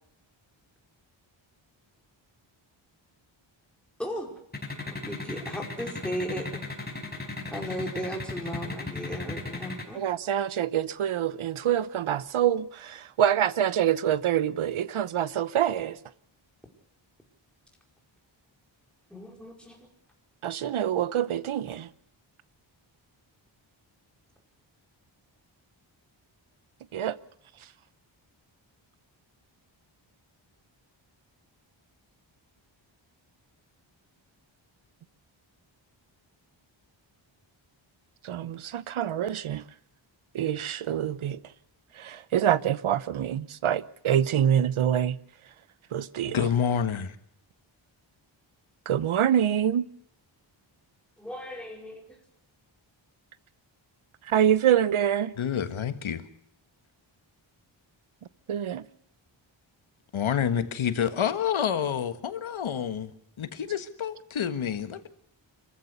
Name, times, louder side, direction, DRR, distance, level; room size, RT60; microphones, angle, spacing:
voice 1, 4.0-4.3 4.8-6.9 7.5-10.0 19.1-19.9 51.2-52.2, equal, ahead, 4.6 m, -36 dB
sound 1, 4.5-9.8, left 3 dB, 20° left, 5.3 m, -35 dB
voice 2, 9.9-16.0 20.4-21.9 26.9-27.2 38.2-39.6 40.3-41.4 42.0-45.2 45.9-46.4 48.9-49.9 54.2-55.3 58.5-58.8, right 10 dB, 85° right, 1.0 m, -26 dB
voice 3, 46.3-47.2 55.4-56.2 60.1-65.1, left 8 dB, 80° left, 1.7 m, -28 dB
26.0 x 14.5 x 6.8 m
wide cardioid pair, 130°, 48 cm